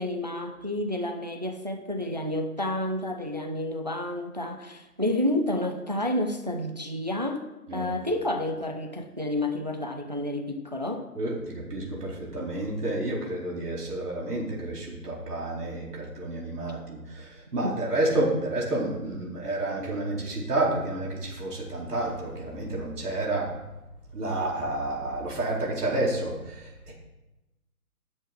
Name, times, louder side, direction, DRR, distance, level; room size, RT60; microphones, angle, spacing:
voice 1, 0.0-7.5 7.7-11.1 17.6-17.8, left 1 dB, 30° right, 5 dB, 0.7 m, -30 dB
voice 2, 11.2-23.5 24.1-26.9, right 2 dB, 80° right, -4 dB, 4.3 m, -30 dB
11.0 x 7.5 x 6.0 m, 1.0 s
hypercardioid pair, 175°, 46 cm